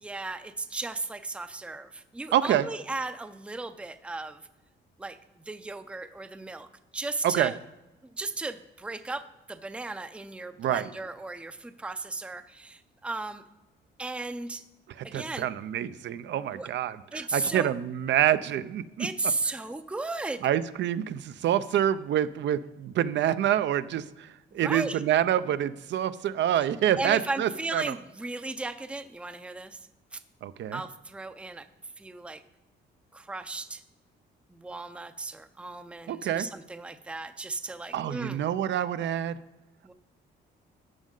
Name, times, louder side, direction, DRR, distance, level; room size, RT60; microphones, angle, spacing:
voice 1, 0.0-4.4 5.0-6.7 6.9-7.6 8.1-13.4 14.0-14.6 15.0-15.5 16.3-16.7 17.1-17.7 19.0-20.5 24.5-25.0 27.0-29.8 30.1-30.2 30.7-31.7 32.0-32.4 33.1-33.8 34.5-38.4 39.8-39.9, right 3 dB, 5° right, 9 dB, 0.5 m, -35 dB
voice 2, 2.3-2.7 7.2-7.5 10.6-10.9 15.0-19.1 20.4-24.3 24.5-27.9 30.4-30.8 36.1-36.5 37.9-39.4, right 11 dB, 65° right, 13 dB, 0.5 m, -27 dB
12.5 x 6.2 x 3.8 m, 1.0 s
cardioid pair, 90°, 20 cm